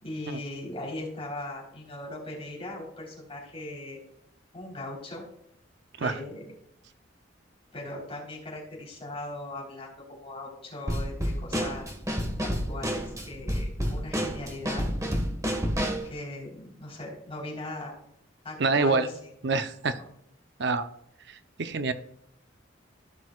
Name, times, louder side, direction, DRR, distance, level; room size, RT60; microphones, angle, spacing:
voice 1, 0.0-4.0 4.5-5.2 6.0-6.5 7.7-9.9 10.2-11.8 12.4-14.9 16.0-17.9 18.4-19.1, left 1 dB, 30° left, -3 dB, 3.8 m, -39 dB
Drum kit / Snare drum, 10.9-16.1, equal, 15° right, 1.5 m, -29 dB
voice 2, 18.6-19.1 19.4-20.0 20.6-20.9 21.3-21.9, right 3 dB, 65° right, 10 dB, 0.7 m, -26 dB
15.5 x 6.3 x 2.4 m, 0.74 s
head